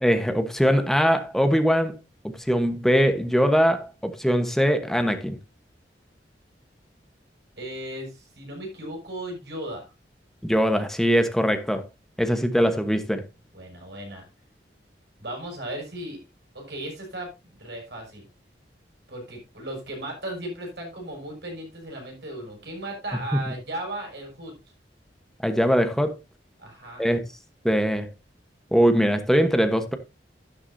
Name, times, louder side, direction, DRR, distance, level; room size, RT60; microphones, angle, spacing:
voice 1, 0.0-2.0 2.2-5.4 10.4-11.9 12.2-13.2 23.3-23.4 25.4-26.2 27.0-27.2 27.6-28.1 28.7-29.9, equal, ahead, 1.2 m, -21 dB
voice 2, 7.6-9.9 13.5-14.3 15.2-16.2 16.5-18.3 19.1-24.5 26.6-27.0, right 1 dB, 70° right, 6.8 m, -36 dB
11.5 x 11.0 x 2.7 m
head